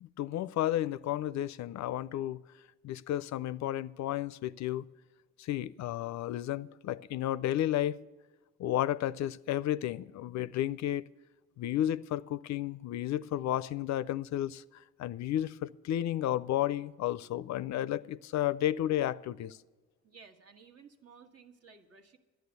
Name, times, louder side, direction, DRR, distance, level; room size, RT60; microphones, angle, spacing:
voice 1, 0.0-2.4 2.8-4.8 5.4-8.0 8.6-11.0 11.6-14.6 15.0-19.6, left 12 dB, 65° left, 0.5 m, -32 dB
voice 2, 20.0-22.2, right 5 dB, 55° right, 1.5 m, -56 dB
11.5 x 9.3 x 8.1 m
cardioid pair, 90°, 30 cm